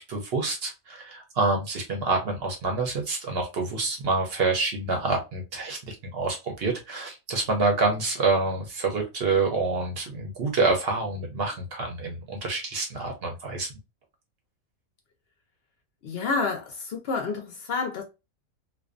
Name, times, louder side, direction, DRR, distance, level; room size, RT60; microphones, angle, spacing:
voice 1, 0.0-13.7, right 3 dB, 55° right, 0.7 m, -27 dB
voice 2, 16.0-18.0, left 4 dB, 60° left, 0.6 m, -29 dB
2.5 x 2.2 x 2.4 m
omnidirectional pair, 1.5 m